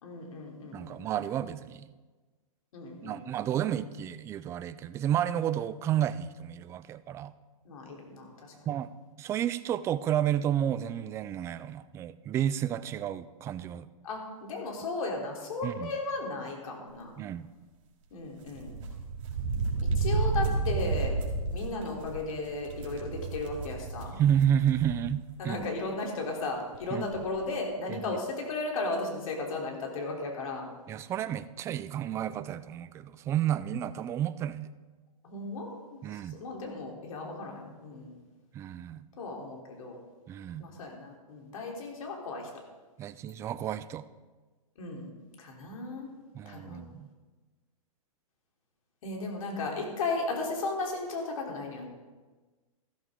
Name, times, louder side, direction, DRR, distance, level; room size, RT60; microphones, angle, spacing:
voice 1, 0.0-1.1 2.7-3.3 7.7-8.7 14.0-17.1 18.1-18.7 19.9-21.1 21.5-24.1 25.4-30.7 35.2-38.2 39.2-40.0 40.6-42.5 44.8-45.1 45.4-46.1 46.5-46.8 49.0-51.9, left 3 dB, 70° left, 0 dB, 3.6 m, -35 dB
voice 2, 0.7-1.9 3.0-7.3 8.7-8.9 9.2-13.9 15.6-15.9 17.2-17.5 24.1-25.6 26.9-27.0 27.9-28.2 30.9-34.7 36.0-36.4 38.5-39.0 40.3-40.6 43.0-44.0 46.3-47.1, right 10 dB, 15° right, 14 dB, 0.3 m, -31 dB
sound 1, 18.5-25.2 25.5-25.6 26.7-26.8 27.1-27.4, right 4 dB, 65° right, 3.8 m, -32 dB
13.5 x 13.0 x 3.8 m, 1.3 s
hypercardioid pair, 140°, 18 cm